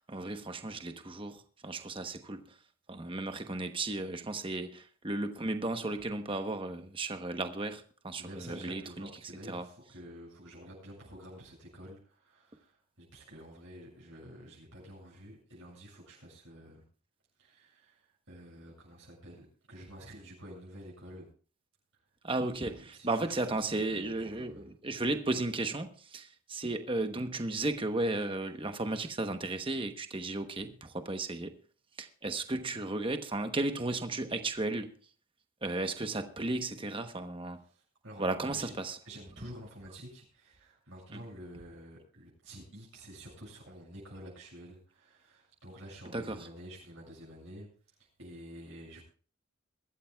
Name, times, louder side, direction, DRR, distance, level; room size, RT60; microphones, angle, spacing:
voice 1, 0.1-2.4 2.9-9.1 9.5-9.6 22.2-31.5 32.0-34.9 35.6-37.6 38.2-39.0 41.1-41.2 46.1-46.5, right 2 dB, 25° right, 1.0 m, -34 dB
voice 2, 8.2-16.8 17.4-21.3 22.7-24.7 37.7-38.8 39.0-47.7 48.0-49.0, equal, 60° right, 7.0 m, -49 dB
22.5 x 13.5 x 2.3 m
head